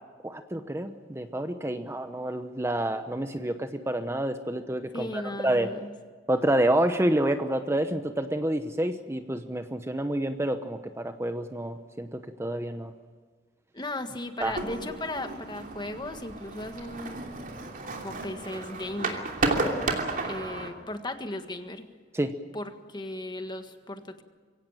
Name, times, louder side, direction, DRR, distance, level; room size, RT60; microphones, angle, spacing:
voice 1, 0.2-5.7 6.3-12.9 14.4-14.5 22.1-22.3, right 1 dB, 15° right, 8 dB, 0.9 m, -28 dB
voice 2, 4.9-5.9 13.7-17.2 18.0-19.3 20.2-21.9 22.5-24.2, left 1 dB, 25° left, 8 dB, 1.6 m, -36 dB
sound 1, 14.4-20.7, right 3 dB, 50° right, 2.9 m, -32 dB
23.5 x 17.0 x 9.0 m, 1.5 s
head